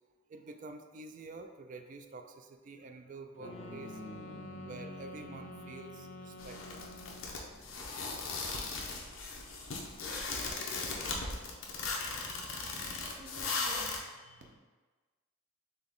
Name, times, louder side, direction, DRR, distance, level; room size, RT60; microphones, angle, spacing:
voice 1, 0.3-4.0 4.6-6.8, right 3 dB, 40° right, 6 dB, 0.3 m, -48 dB
sound 1, 3.4-7.6, left 2 dB, 65° left, 0.3 m, -49 dB
sound 2, 3.4-9.2, equal, 10° right, 0.7 m, -51 dB
sound 3, 6.4-14.0, left 3 dB, 90° left, 0.7 m, -38 dB
voice 2, 13.1-14.6, right 1 dB, 70° right, -1 dB, 0.7 m, -54 dB
4.0 x 3.3 x 3.6 m, 1.3 s
head